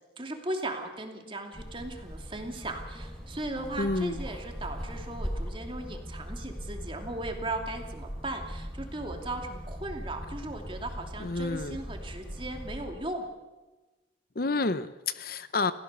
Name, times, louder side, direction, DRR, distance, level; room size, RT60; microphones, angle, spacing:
voice 1, 0.2-13.3, right 2 dB, 30° right, 3 dB, 2.7 m, -37 dB
sound 1, 1.5-12.9, equal, 5° left, 4.5 m, -40 dB
voice 2, 3.8-4.2 11.2-11.8 14.3-15.7, left 3 dB, 55° left, 13 dB, 0.8 m, -29 dB
29.0 x 16.0 x 6.8 m, 1.2 s
head